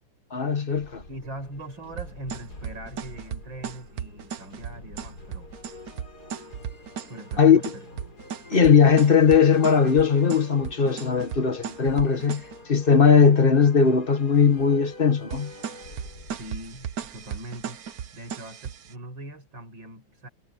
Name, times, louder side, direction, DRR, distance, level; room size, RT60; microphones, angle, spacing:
voice 1, 0.3-1.0 7.4-7.6 8.5-12.4 12.7-15.5, left 6 dB, 30° left, 1.6 m, -19 dB
sound 1, 0.7-18.4, left 2 dB, 55° left, 5.9 m, -46 dB
voice 2, 1.1-5.5 7.1-7.9 16.3-17.8 18.1-20.3, right 1 dB, 85° right, 7.4 m, -41 dB
sound 2, 2.0-12.6 15.3-18.9, right 8 dB, 55° right, 1.3 m, -36 dB
omnidirectional pair, 2.1 m